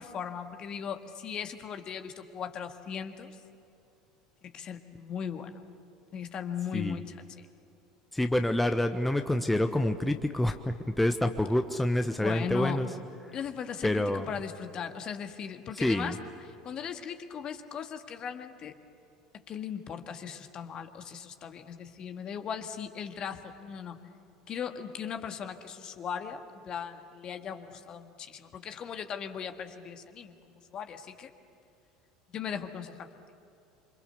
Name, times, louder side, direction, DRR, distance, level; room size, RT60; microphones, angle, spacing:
voice 1, 0.0-3.4 4.4-5.6 6.1-7.5 12.2-12.8 13.3-16.2 16.4-18.8 19.5-24.0 24.5-31.3 32.3-33.1, left 7 dB, 40° left, 7 dB, 1.8 m, -38 dB
voice 2, 8.1-12.9 13.8-14.3 15.8-16.1, left 1 dB, 5° left, 7 dB, 1.1 m, -27 dB
27.5 x 25.5 x 6.9 m, 2.7 s
figure-of-eight pair, 70°, 2 cm